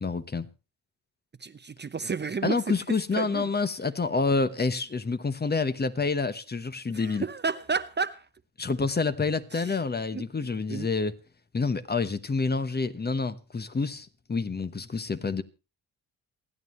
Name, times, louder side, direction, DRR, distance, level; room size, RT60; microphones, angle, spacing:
voice 1, 0.0-0.5 2.4-7.2 8.6-11.1 11.5-15.4, left 4 dB, 25° left, 1.1 m, -28 dB
voice 2, 1.4-2.6 3.2-3.5 6.9-8.3 9.5-9.7 10.1-10.2 10.7-10.9, right 5 dB, 30° right, 0.8 m, -31 dB
28.0 x 9.4 x 3.1 m
supercardioid pair, 65°, 38 cm